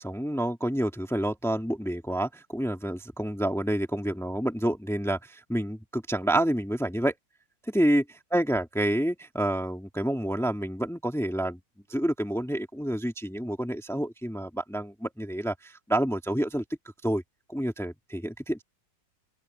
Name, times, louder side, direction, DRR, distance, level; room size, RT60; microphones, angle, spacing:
voice 1, 0.0-7.1 7.7-8.0 8.3-11.6 11.9-16.6 17.0-17.2 17.5-18.6, right 1 dB, ahead, 2.2 m, -28 dB
open air
omnidirectional pair, 1.9 m